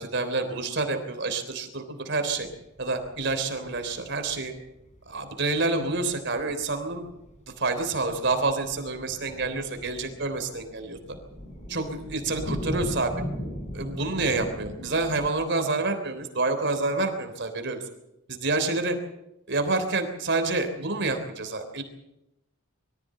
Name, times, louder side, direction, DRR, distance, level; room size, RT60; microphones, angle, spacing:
voice 1, 0.0-2.5 2.8-4.5 5.1-7.0 7.6-11.0 11.7-13.1 13.7-17.8 18.3-19.0 19.5-21.8, right 3 dB, 55° right, 7 dB, 3.5 m, -28 dB
sound 1, 2.3-15.3, equal, 35° left, 4.5 m, -39 dB
23.5 x 15.0 x 7.8 m, 0.88 s
head